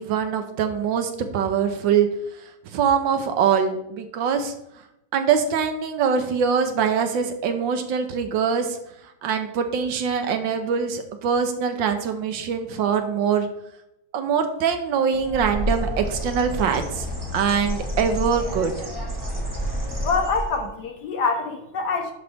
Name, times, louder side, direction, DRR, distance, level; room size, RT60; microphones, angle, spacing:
voice 1, 0.0-2.1 2.4-4.5 5.1-8.8 9.2-13.5 14.1-17.1 17.3-18.7, right 7 dB, 75° right, 7 dB, 1.5 m, -23 dB
Bird, 15.1-20.7, equal, 15° right, 1.1 m, -29 dB
voice 2, 20.0-22.1, left 4 dB, 65° left, 4 dB, 1.5 m, -25 dB
11.0 x 4.0 x 3.5 m, 0.82 s
omnidirectional pair, 2.1 m